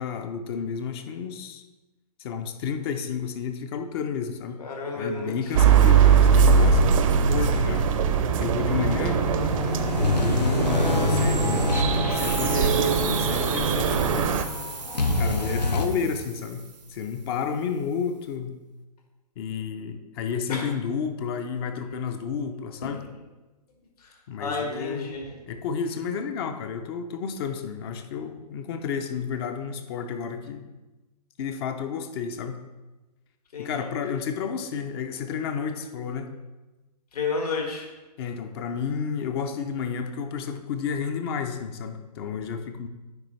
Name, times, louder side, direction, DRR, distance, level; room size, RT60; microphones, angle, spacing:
voice 1, 0.0-1.6 2.2-4.6 5.0-7.9 8.4-9.2 10.0-14.3 15.2-16.6 16.9-18.6 19.4-23.0 24.3-25.1 25.5-30.6 31.4-32.6 33.6-36.3 38.2-42.9, left 6 dB, 40° left, 7 dB, 0.5 m, -31 dB
voice 2, 4.6-5.5 8.9-9.3 20.5-20.7 22.9-23.1 24.0-25.3 33.5-33.9 37.1-37.9, left 3 dB, 70° left, 0 dB, 2.0 m, -32 dB
sound 1, 5.5-14.4, right 6 dB, 50° right, 0.6 m, -21 dB
sound 2, 8.7-15.9, left 3 dB, 85° left, 0.8 m, -27 dB
sound 3, 12.1-17.4, right 5 dB, 90° right, 0.8 m, -37 dB
9.5 x 3.9 x 3.2 m, 1.1 s
hypercardioid pair, 125°, 21 cm